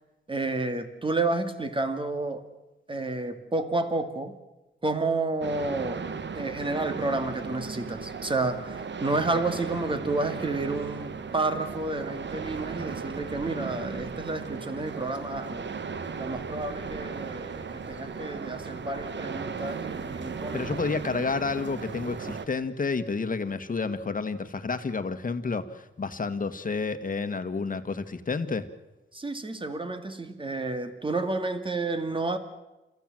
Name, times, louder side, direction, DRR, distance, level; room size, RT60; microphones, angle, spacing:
voice 1, 0.3-2.4 2.9-4.3 4.8-6.0 6.3-15.7 16.2-20.7 29.1-32.4, right 2 dB, 25° right, 9 dB, 2.2 m, -30 dB
sound 1, 5.4-22.5, right 5 dB, 65° right, 1.3 m, -36 dB
voice 2, 20.5-28.6, left 4 dB, 45° left, 10 dB, 1.6 m, -30 dB
30.0 x 15.0 x 7.8 m, 1.0 s
wide cardioid pair, 120°, 20 cm